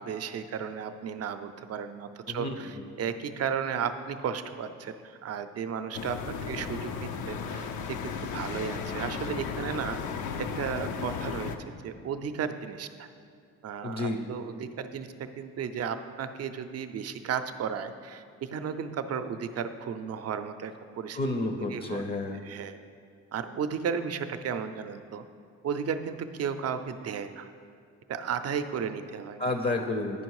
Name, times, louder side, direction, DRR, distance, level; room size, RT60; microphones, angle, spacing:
voice 1, 0.0-10.0 10.6-11.5 11.8-13.1 13.6-15.1 15.4-21.2 21.7-22.0 22.5-22.8 23.3-25.2 25.6-27.5 28.1-29.5, right 7 dB, 55° right, 9 dB, 0.6 m, -34 dB
voice 2, 2.3-2.9 13.8-14.3 21.1-22.4 29.4-30.2, left 2 dB, 30° left, 6 dB, 0.6 m, -31 dB
sound 1, 5.9-11.6, left 6 dB, 80° left, 0.6 m, -35 dB
9.7 x 5.2 x 4.7 m, 2.2 s
cardioid pair, 90°, 30 cm